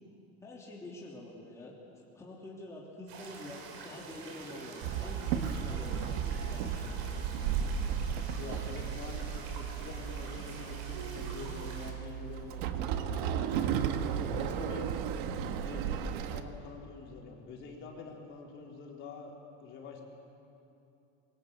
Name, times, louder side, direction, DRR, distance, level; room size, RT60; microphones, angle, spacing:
voice 1, 0.4-1.7 2.1-7.0, left 1 dB, 10° left, -4 dB, 2.9 m, -46 dB
sound 1, 3.1-11.9, right 4 dB, 85° right, 5.8 m, -47 dB
Walk footsteps / Chatter / Hiss, 4.8-16.4, right 8 dB, 70° right, 1.6 m, -34 dB
voice 2, 8.4-13.8 14.0-14.9 15.3-19.3 19.6-20.0, left 4 dB, 40° left, -1 dB, 4.0 m, -46 dB
25.0 x 23.0 x 8.2 m, 2.8 s
cardioid pair, 160°, 30 cm